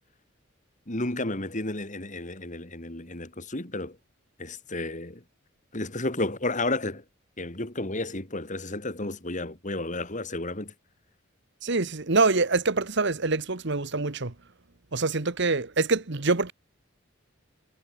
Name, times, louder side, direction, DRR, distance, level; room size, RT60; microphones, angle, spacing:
voice 1, 0.9-4.0 4.4-5.2 5.7-7.0 7.4-10.7, left 2 dB, 40° left, 3.0 m, -32 dB
voice 2, 11.6-14.3 14.9-16.5, right 3 dB, 60° right, 1.5 m, -25 dB
head